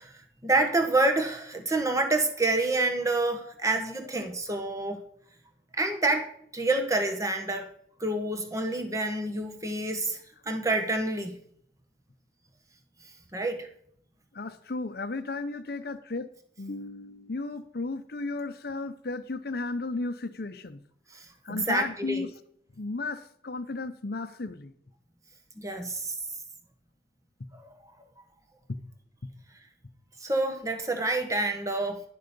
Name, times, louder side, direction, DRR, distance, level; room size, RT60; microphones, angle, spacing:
voice 1, 0.0-5.0 5.8-7.7 8.0-10.2 10.4-11.3 13.3-13.7 21.1-22.2 25.6-26.1 27.6-27.7 30.2-32.0, right 2 dB, 15° right, 5 dB, 1.2 m, -28 dB
voice 2, 3.2-3.5 14.3-16.3 16.6-20.8 21.4-22.3 22.8-24.7 28.7-28.8 29.2-29.3, left 3 dB, 55° left, 11 dB, 0.7 m, -34 dB
11.0 x 6.7 x 5.3 m, 0.65 s
head